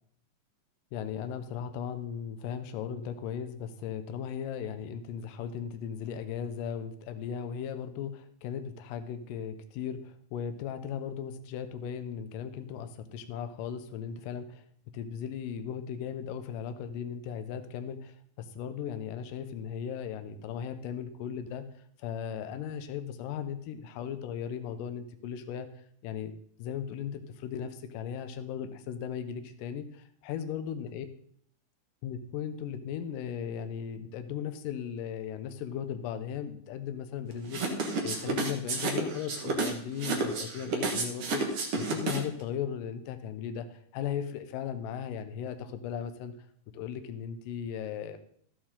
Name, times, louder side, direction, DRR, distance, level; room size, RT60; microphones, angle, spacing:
voice 1, 0.9-14.7 14.9-21.6 22.0-25.7 26.0-26.3 26.6-31.1 32.0-41.4 41.8-46.3 46.7-48.3, left 8 dB, 75° left, 9 dB, 2.4 m, -37 dB
sound 1, 37.5-42.4, right 3 dB, 50° right, 2.0 m, -31 dB
14.0 x 8.8 x 3.7 m, 0.62 s
omnidirectional pair, 4.1 m